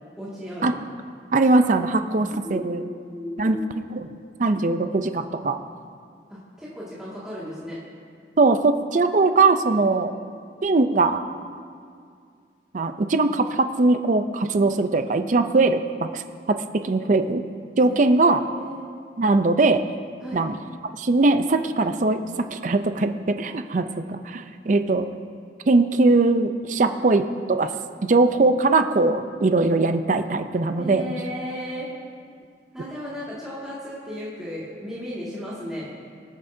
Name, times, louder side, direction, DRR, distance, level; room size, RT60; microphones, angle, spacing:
voice 1, 0.2-0.8 2.2-3.7 6.3-7.8 17.8-18.8 20.2-20.4 26.8-27.0 30.8-31.9 32.7-35.9, equal, 5° right, -10 dB, 2.0 m, -35 dB
voice 2, 1.3-2.8 3.4-3.6 3.9-4.1 4.4-5.6 8.4-10.1 10.6-11.2 12.7-17.4 17.8-18.4 19.2-19.8 20.3-20.6 20.8-25.1 25.7-27.2 27.5-27.7 28.0-31.0, right 3 dB, 45° right, 8 dB, 0.5 m, -21 dB
20.5 x 8.6 x 2.7 m, 2.2 s
head